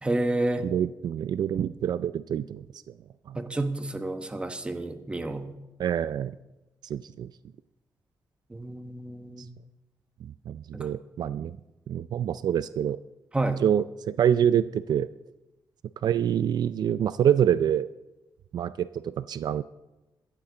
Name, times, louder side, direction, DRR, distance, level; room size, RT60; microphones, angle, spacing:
voice 1, 0.0-0.7 3.3-5.5 8.5-9.4 10.7-10.9 13.3-13.6, right 2 dB, 15° right, 7 dB, 1.0 m, -30 dB
voice 2, 0.6-2.9 3.3-3.4 5.8-6.4 6.8-7.3 10.2-11.6 11.9-13.0 13.6-15.1 16.0-17.9 18.5-19.6, right 9 dB, 65° right, 14 dB, 0.4 m, -26 dB
16.0 x 13.0 x 3.9 m, 1.0 s
wide cardioid pair, 145°, 8 cm